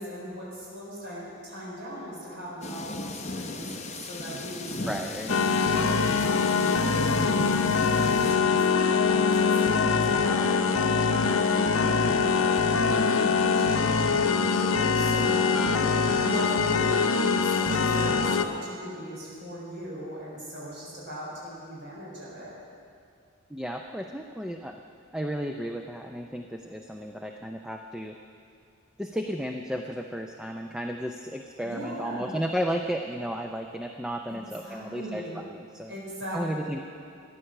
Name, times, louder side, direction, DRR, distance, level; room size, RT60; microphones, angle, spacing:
voice 1, 0.0-5.0 5.5-15.7 16.2-22.5 31.6-32.3 34.3-34.4 34.6-35.4 35.9-36.7, equal, 55° right, -6 dB, 4.3 m, -39 dB
sound 1, 2.6-8.4, left 2 dB, 30° left, 0.8 m, -36 dB
voice 2, 4.8-5.4 15.7-16.2 23.5-24.8 25.1-28.2 29.0-35.9 36.3-36.8, equal, 5° right, 3 dB, 0.4 m, -33 dB
sound 2, 5.3-18.4, left 5 dB, 85° left, 0.7 m, -23 dB
14.5 x 10.0 x 6.5 m, 2.4 s
head